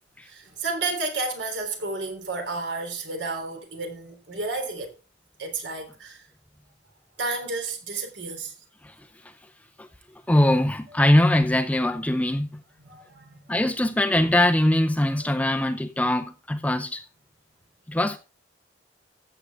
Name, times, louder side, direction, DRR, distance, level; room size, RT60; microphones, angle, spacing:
voice 1, 0.2-4.9 5.4-6.3 7.2-8.5 12.8-13.6 15.2-15.3, right 3 dB, 70° right, 3.4 m, -32 dB
voice 2, 10.3-12.5 13.5-17.0 17.9-18.2, left 1 dB, 10° left, 0.6 m, -22 dB
14.0 x 7.9 x 3.5 m
head